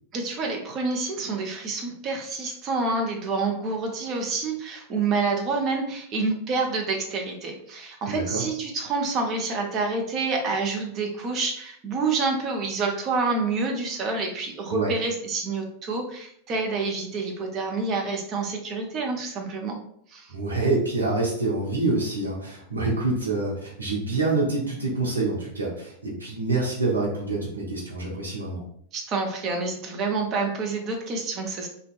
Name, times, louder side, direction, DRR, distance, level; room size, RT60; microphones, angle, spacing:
voice 1, 0.1-19.8 20.1-20.3 28.9-31.7, right 3 dB, 35° right, 2 dB, 0.5 m, -28 dB
voice 2, 8.1-8.4 14.7-14.9 20.3-28.6, right 3 dB, 80° right, -3 dB, 0.8 m, -26 dB
2.6 x 2.1 x 2.4 m, 0.67 s
figure-of-eight pair, 90°, 0 cm